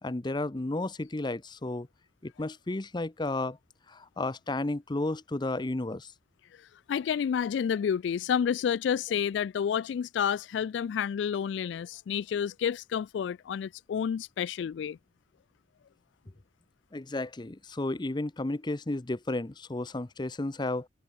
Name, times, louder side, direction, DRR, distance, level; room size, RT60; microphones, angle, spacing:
voice 1, 0.0-1.9 2.2-3.6 3.9-6.1 16.9-20.9, left 2 dB, 25° left, 0.7 m, -33 dB
voice 2, 6.9-15.0, left 8 dB, 80° left, 0.3 m, -30 dB
head